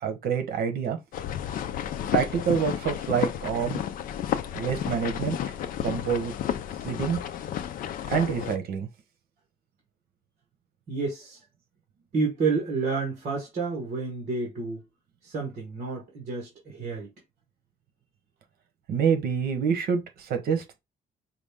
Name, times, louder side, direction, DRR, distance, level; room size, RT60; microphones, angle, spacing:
voice 1, 0.0-1.0 2.1-3.8 4.5-5.4 5.8-6.3 6.8-7.2 8.1-8.9 18.9-20.8, right 7 dB, 75° right, 1.1 m, -27 dB
sound 1, 1.1-8.6, left 10 dB, 60° left, 0.5 m, -31 dB
voice 2, 10.9-11.4 12.1-14.8 15.2-17.1, right 4 dB, 45° right, 1.5 m, -30 dB
5.1 x 2.4 x 3.5 m
cardioid pair, 175°, 16 cm